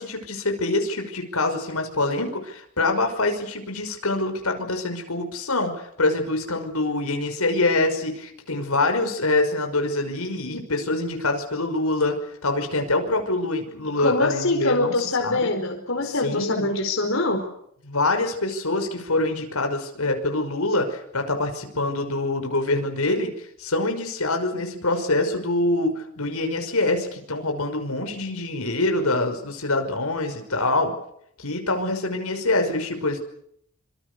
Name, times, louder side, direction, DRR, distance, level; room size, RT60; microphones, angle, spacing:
voice 1, 0.0-12.2 12.4-14.9 15.2-15.5 16.1-16.7 17.8-23.3 23.6-30.9 31.4-33.2, left 2 dB, 90° left, 5 dB, 5.8 m, -25 dB
voice 2, 14.0-17.5, left 2 dB, 65° left, 4 dB, 4.7 m, -24 dB
26.5 x 26.0 x 6.9 m, 0.69 s
head